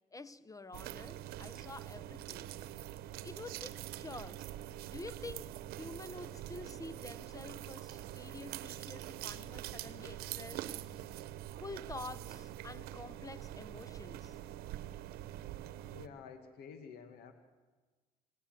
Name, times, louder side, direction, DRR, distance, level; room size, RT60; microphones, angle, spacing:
voice 1, 0.1-2.5 3.2-4.5 4.9-11.1 11.6-14.4, left 3 dB, 20° left, 1.3 m, -48 dB
sound 1, 0.7-16.1, right 13 dB, 75° right, 1.0 m, -45 dB
voice 2, 15.9-17.3, left 6 dB, 75° left, 1.9 m, -50 dB
28.0 x 19.0 x 7.8 m
hypercardioid pair, 55°, 16 cm